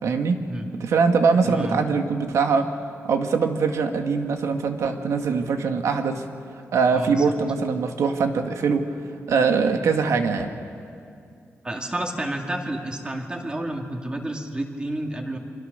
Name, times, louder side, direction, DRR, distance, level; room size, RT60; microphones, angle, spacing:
voice 1, 0.0-0.4 0.8-2.7 3.0-6.2 6.7-8.9 9.3-10.5, right 5 dB, 90° right, 5 dB, 1.8 m, -22 dB
voice 2, 1.4-1.8 6.9-7.3 11.6-15.4, right 1 dB, 20° right, 2 dB, 2.3 m, -30 dB
28.0 x 25.0 x 6.8 m, 2.4 s
wide cardioid pair, 145°, 5 cm